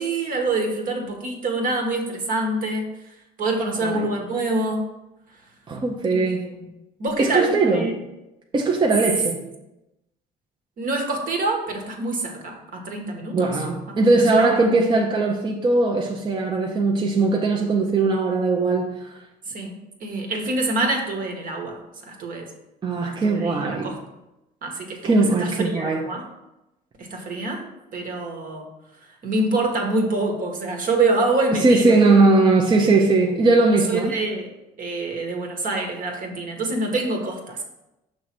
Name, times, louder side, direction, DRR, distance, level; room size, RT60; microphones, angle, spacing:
voice 1, 0.0-2.9 3.4-4.8 6.1-6.4 7.0-8.0 10.8-13.6 14.1-14.7 19.5-21.8 22.1-22.5 23.0-24.0 24.6-26.3 27.0-28.7 29.2-32.0 33.9-34.5 34.8-37.6, right 2 dB, 55° right, 1.3 m, -26 dB
voice 2, 3.8-4.2 5.7-6.6 7.2-8.0 8.5-9.5 13.3-19.2 22.8-23.9 25.0-26.1 31.6-34.1, right 3 dB, 25° right, 0.6 m, -20 dB
6.3 x 3.2 x 5.9 m
cardioid pair, 110°, 17 cm